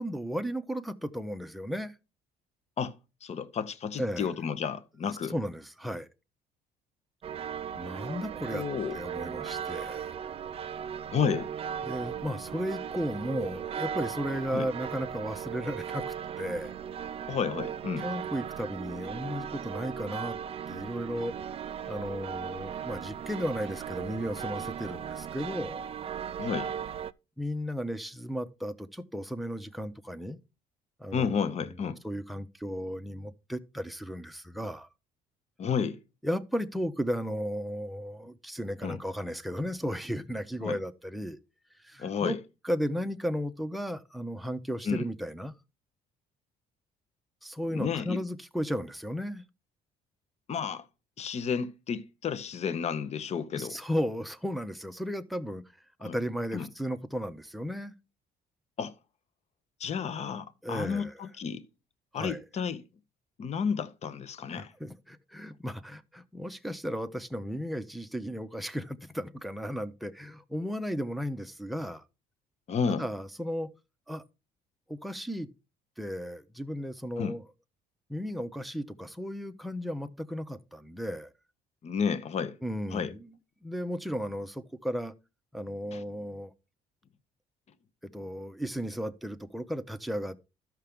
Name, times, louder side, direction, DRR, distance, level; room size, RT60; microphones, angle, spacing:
voice 1, 0.0-1.9 4.0-4.3 5.3-6.1 7.8-8.6 8.9-10.2 11.8-16.8 18.0-20.4 20.7-21.3 21.9-25.8 27.4-30.4 31.0-31.4 32.0-34.9 36.2-41.4 41.8-42.4 42.6-45.5 47.4-49.4 53.5-55.6 56.0-57.9 60.6-61.2 62.1-62.4 64.6-72.0 72.9-73.7 74.1-74.2 74.9-75.5 76.0-77.4 78.1-81.3 82.6-83.3 83.6-85.1 85.5-86.5 88.1-90.4, equal, ahead, 0.6 m, -35 dB
voice 2, 3.2-5.3 8.5-9.0 11.1-11.5 14.5-14.7 17.3-18.0 26.4-26.7 31.1-32.0 35.6-36.0 38.8-39.0 40.6-40.8 42.0-42.4 44.9-45.1 47.7-48.2 50.5-50.9 51.2-53.8 56.0-56.2 56.5-56.7 58.8-58.9 59.8-61.6 62.1-62.8 63.4-64.7 72.7-73.0 77.2-77.3 81.8-82.6 82.9-83.1 85.9-86.0, left 6 dB, 40° left, 0.8 m, -31 dB
sound 1, 7.2-27.1, right 8 dB, 35° right, 0.4 m, -37 dB
13.0 x 5.8 x 3.5 m
cardioid pair, 110°, 17 cm